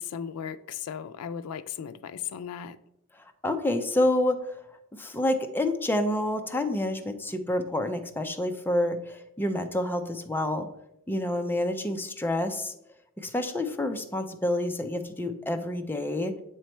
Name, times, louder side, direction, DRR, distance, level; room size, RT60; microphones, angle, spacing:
voice 1, 0.0-2.8, left 8 dB, 90° left, 0.4 m, -36 dB
voice 2, 3.4-4.5 4.9-10.7 11.1-12.7 13.2-16.4, left 1 dB, 10° left, 0.5 m, -28 dB
7.7 x 3.1 x 4.3 m
head